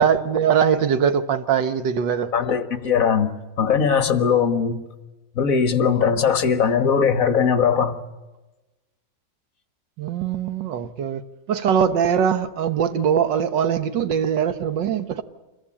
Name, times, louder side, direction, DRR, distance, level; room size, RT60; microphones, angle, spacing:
voice 1, 0.0-2.3 10.0-11.2 11.5-15.2, right 7 dB, 75° right, 1.8 m, -21 dB
voice 2, 2.3-4.8 5.4-8.0, left 6 dB, 50° left, 1.8 m, -20 dB
27.0 x 22.0 x 8.8 m
omnidirectional pair, 2.0 m